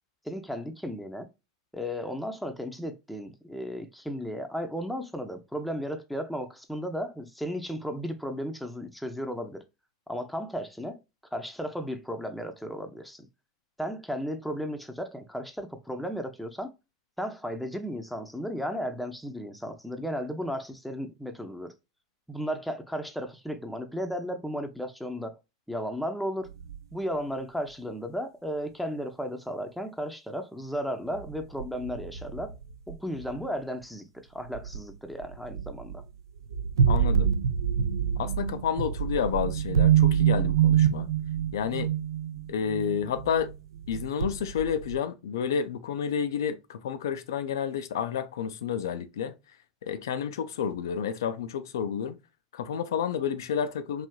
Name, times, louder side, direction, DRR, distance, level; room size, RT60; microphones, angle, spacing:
voice 1, 0.2-1.3 1.7-9.6 10.1-11.0 11.3-13.3 13.8-16.7 17.2-21.7 22.3-25.3 25.7-26.5 26.9-32.5 32.9-36.0, equal, ahead, 0.6 m, -34 dB
sound 1, 26.6-26.8 31.1-33.5 34.5-34.8 35.2-36.0 36.4-43.5 43.8-45.0, right 9 dB, 80° right, 0.3 m, -26 dB
voice 2, 36.9-37.3 38.2-41.1 41.5-41.9 42.5-43.5 43.9-49.3 49.8-52.2 52.5-54.1, left 8 dB, 75° left, 0.4 m, -30 dB
3.2 x 2.6 x 2.2 m
hypercardioid pair, 95°, 2 cm